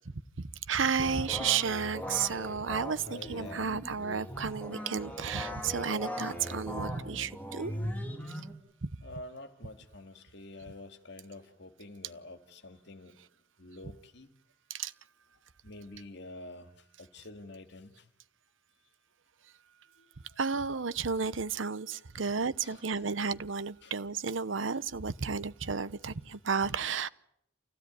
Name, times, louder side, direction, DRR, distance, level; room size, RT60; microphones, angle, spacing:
voice 1, 0.4-7.7 8.8-8.9 14.7-14.9 20.4-27.1, right 5 dB, 75° right, 0.9 m, -32 dB
sound 1, 1.0-8.5, equal, 10° left, 3.1 m, -39 dB
voice 2, 3.1-3.7 9.0-13.2 13.6-14.3 15.6-16.7 17.0-18.0 20.0-20.1 22.6-23.1 23.8-23.9, left 2 dB, 60° left, 2.2 m, -48 dB
28.0 x 16.0 x 9.3 m
head